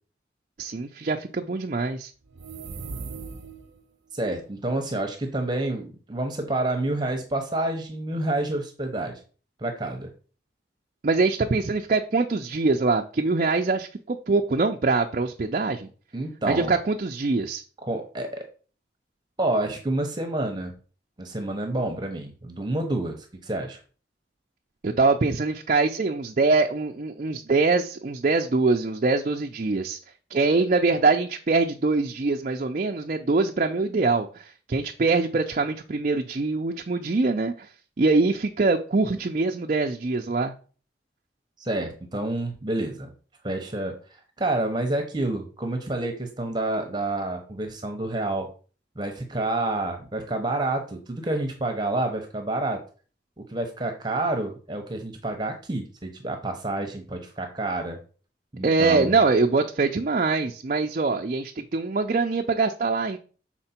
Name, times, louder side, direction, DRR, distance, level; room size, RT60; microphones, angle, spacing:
voice 1, 0.6-2.1 11.0-15.9 16.4-17.6 24.8-30.0 30.3-37.7 38.0-40.5 58.6-63.2, right 3 dB, 45° right, 3 dB, 0.5 m, -23 dB
sound 1, 2.3-3.8, right 4 dB, 85° right, 0.7 m, -38 dB
voice 2, 4.1-9.2 9.6-10.1 16.1-16.8 17.8-18.5 19.4-20.7 21.2-23.8 41.6-43.1 43.4-44.0 44.4-48.5 49.0-52.8 53.4-58.0 58.5-59.2, right 2 dB, 25° right, 4 dB, 0.9 m, -28 dB
6.6 x 4.4 x 4.3 m, 0.39 s
head